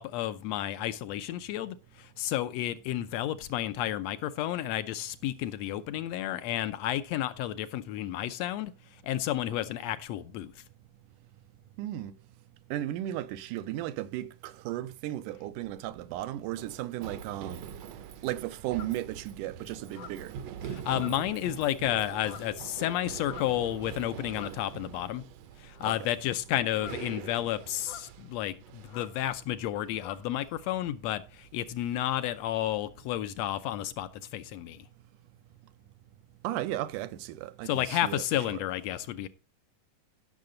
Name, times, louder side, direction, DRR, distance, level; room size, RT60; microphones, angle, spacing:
voice 1, 0.0-10.6 20.7-25.2 25.6-34.9 37.7-39.3, left 13 dB, 80° left, 1.6 m, -32 dB
voice 2, 11.8-12.1 12.7-17.6 18.2-20.3 25.8-26.1 36.4-38.6, right 13 dB, 90° right, 2.3 m, -35 dB
Run, 15.6-34.1, right 8 dB, 75° right, 1.6 m, -45 dB
sound 1, 18.8-19.0 19.9-20.3 20.9-21.5 22.2-22.6 23.2-23.7 24.3-24.7 25.8-26.1 26.7-27.3 27.8-28.1 28.9-29.2 29.5-29.7 29.9-30.3, left 11 dB, 65° left, 1.6 m, -47 dB
15.5 x 6.6 x 3.9 m
omnidirectional pair, 3.6 m